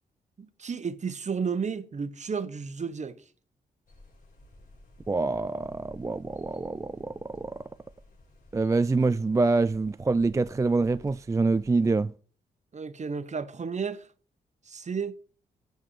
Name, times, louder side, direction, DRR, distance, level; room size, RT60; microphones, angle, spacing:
voice 1, 0.4-3.2 12.7-14.1 14.7-15.2, right 5 dB, 40° right, 1.0 m, -32 dB
sound 1, 3.9-11.9, left 1 dB, 50° left, 5.3 m, -54 dB
voice 2, 5.1-7.6 8.5-12.1, right 3 dB, 15° right, 0.3 m, -26 dB
9.8 x 4.3 x 7.6 m
supercardioid pair, 55°, 18 cm